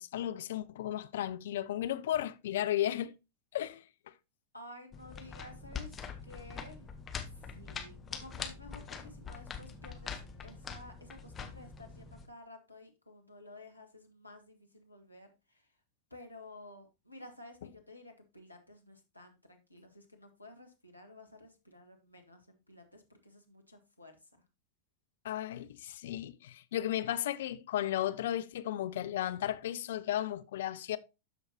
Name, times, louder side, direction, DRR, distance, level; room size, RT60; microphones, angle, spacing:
voice 1, 0.0-3.2 3.5-4.1 25.2-31.0, left 12 dB, 60° left, 0.5 m, -34 dB
voice 2, 4.5-6.0 6.2-6.9 7.3-15.7 16.1-24.3, left 1 dB, 85° left, 1.4 m, -53 dB
sound 1, 4.9-12.3, left 6 dB, 20° left, 1.1 m, -44 dB
12.5 x 4.6 x 2.8 m
figure-of-eight pair, 90°, 0 cm